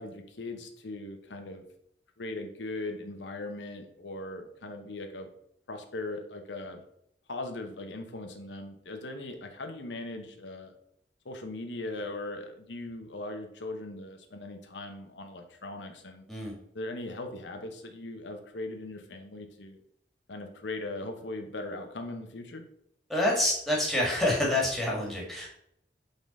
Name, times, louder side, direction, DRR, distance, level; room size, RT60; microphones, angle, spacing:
voice 1, 0.0-1.6 2.2-5.3 5.7-6.8 7.3-10.7 11.2-16.3 16.7-19.8 20.3-22.6, left 2 dB, 85° left, 5 dB, 0.8 m, -39 dB
voice 2, 23.1-25.5, left 1 dB, ahead, -3 dB, 1.7 m, -27 dB
5.3 x 3.9 x 5.3 m, 0.73 s
head